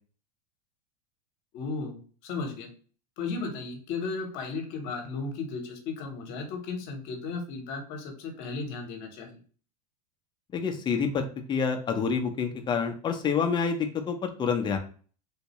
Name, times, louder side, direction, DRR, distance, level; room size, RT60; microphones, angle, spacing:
voice 1, 1.5-2.7 3.2-9.4, left 4 dB, 50° left, 3 dB, 1.1 m, -35 dB
voice 2, 10.5-14.8, left 6 dB, 20° left, 5 dB, 0.7 m, -28 dB
3.5 x 2.6 x 3.0 m, 0.41 s
hypercardioid pair, 100°, 21 cm